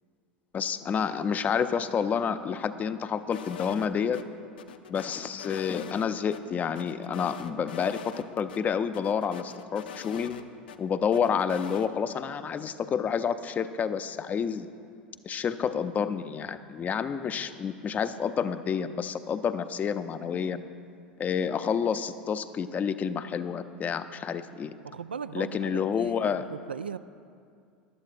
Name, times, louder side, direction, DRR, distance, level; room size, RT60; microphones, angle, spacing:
voice 1, 0.5-4.2 4.9-10.3 10.8-14.7 15.2-20.6 21.2-24.7 25.3-26.5, left 7 dB, 30° left, 11 dB, 0.6 m, -29 dB
sound 1, 3.3-4.2 4.6-6.4 6.8-8.2 8.5-8.6 8.9-10.8 11.1-11.9, left 9 dB, 70° left, 0.6 m, -43 dB
voice 2, 24.8-27.0, right 7 dB, 85° right, 12 dB, 0.4 m, -38 dB
19.0 x 12.0 x 2.5 m, 2.3 s
figure-of-eight pair, 80°, 5 cm